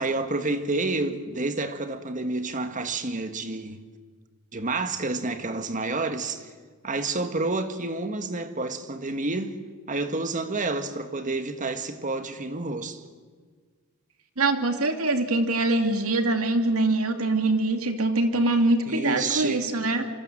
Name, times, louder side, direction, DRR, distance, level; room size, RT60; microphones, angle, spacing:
voice 1, 0.0-3.8 4.5-6.5 6.8-9.6 9.9-13.0 18.9-19.7, right 3 dB, 35° right, 1.6 m, -29 dB
voice 2, 14.4-20.0, right 2 dB, 70° right, 2.6 m, -23 dB
25.5 x 25.0 x 7.5 m
head